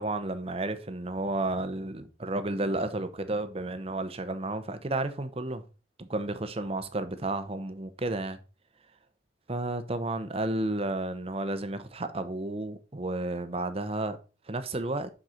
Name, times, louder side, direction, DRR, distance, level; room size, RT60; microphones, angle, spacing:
voice 1, 0.0-5.6 6.0-8.4 9.5-14.2 14.5-15.1, right 2 dB, 35° right, 0.8 m, -32 dB
6.5 x 6.4 x 4.3 m
head